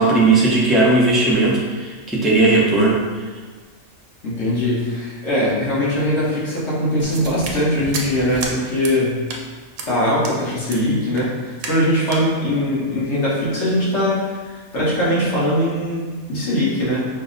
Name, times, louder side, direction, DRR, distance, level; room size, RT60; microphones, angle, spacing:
voice 1, 0.0-3.0, right 2 dB, ahead, -5 dB, 0.4 m, -16 dB
voice 2, 4.2-9.2 9.9-17.0, left 1 dB, 60° left, -8 dB, 1.4 m, -21 dB
sound 1, 7.0-8.5 8.8-9.0 9.3-9.4 9.8-9.9 10.2-10.4 10.7-10.8 11.1-11.3 11.6-11.8 12.1-12.2, right 3 dB, 85° right, 1.0 m, -31 dB
5.3 x 2.1 x 3.8 m, 1.4 s
omnidirectional pair, 1.4 m